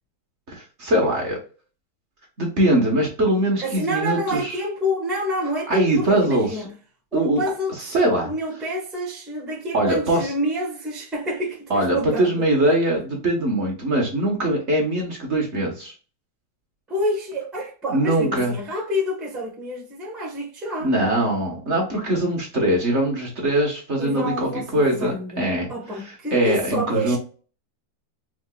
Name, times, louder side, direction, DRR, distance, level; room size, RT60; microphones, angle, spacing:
voice 1, 0.5-1.4 2.4-4.5 5.7-6.6 7.1-7.4 7.9-8.3 9.7-10.3 11.7-15.9 17.9-18.6 20.8-25.7 26.3-27.2, right 1 dB, 45° right, 1.1 m, -22 dB
voice 2, 3.6-6.8 7.1-12.4 16.9-20.9 24.0-27.2, equal, ahead, 0.5 m, -28 dB
4.6 x 2.3 x 2.2 m
omnidirectional pair, 2.0 m